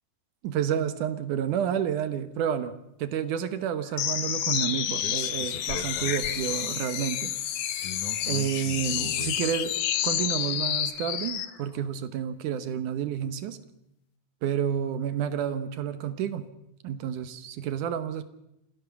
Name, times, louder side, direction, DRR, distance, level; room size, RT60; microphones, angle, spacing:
voice 1, 0.4-2.7 3.0-7.3 8.3-13.6 14.4-16.5 16.8-18.2, right 9 dB, 75° right, 12 dB, 2.6 m, -30 dB
sound 1, 4.0-11.5, left 10 dB, 70° left, 2.6 m, -29 dB
27.0 x 16.5 x 7.1 m, 0.85 s
omnidirectional pair, 3.7 m